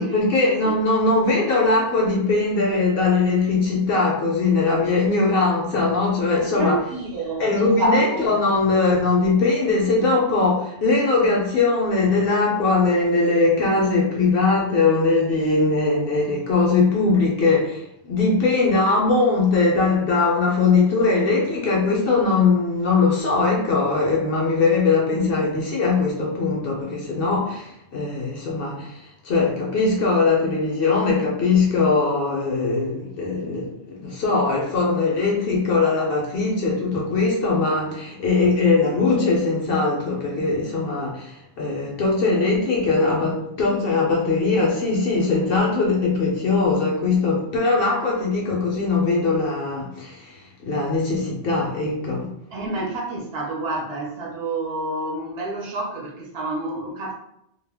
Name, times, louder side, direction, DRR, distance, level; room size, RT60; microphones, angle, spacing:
voice 1, 0.0-6.8 7.4-52.3, left 3 dB, 60° left, -2 dB, 0.7 m, -21 dB
voice 2, 6.5-8.3 52.5-57.1, right 2 dB, 60° right, -2 dB, 0.7 m, -28 dB
2.3 x 2.1 x 3.3 m, 0.77 s
omnidirectional pair, 1.3 m